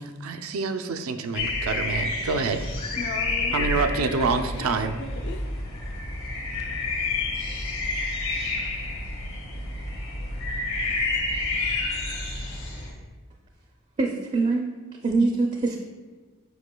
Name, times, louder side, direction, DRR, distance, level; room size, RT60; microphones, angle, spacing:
voice 1, 0.0-2.7 3.5-4.9, right 4 dB, 90° right, 0.5 m, -27 dB
sound 1, 1.3-12.9, left 2 dB, 75° left, 1.8 m, -29 dB
voice 2, 3.0-4.7 5.0-5.5, left 4 dB, 55° left, 0.5 m, -38 dB
voice 3, 14.0-14.7 15.0-15.8, right 3 dB, 30° right, 0.4 m, -23 dB
7.9 x 5.4 x 2.2 m
head